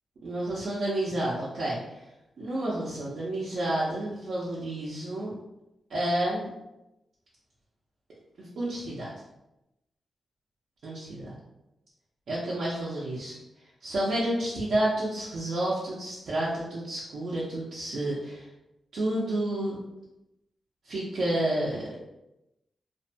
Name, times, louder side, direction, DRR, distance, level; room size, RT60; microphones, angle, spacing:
voice 1, 0.2-2.0 2.4-5.3 5.9-6.5 8.4-9.1 10.8-11.3 12.3-13.4 13.8-18.5 18.9-19.8 20.8-21.9, right 1 dB, 70° right, -7 dB, 0.6 m, -30 dB
2.5 x 2.2 x 2.6 m, 0.93 s
wide cardioid pair, 105°, 0 cm